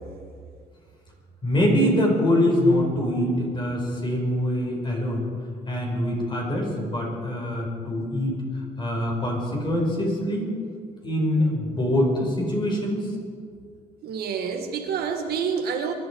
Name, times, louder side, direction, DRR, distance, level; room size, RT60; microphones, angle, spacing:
voice 1, 1.4-5.3 5.7-8.4 8.8-10.5 11.0-13.1, left 1 dB, 30° left, -1 dB, 5.5 m, -24 dB
voice 2, 14.0-15.9, right 6 dB, 70° right, 4 dB, 1.9 m, -28 dB
23.0 x 12.5 x 4.8 m, 2.2 s
cardioid pair, 110°, 17 cm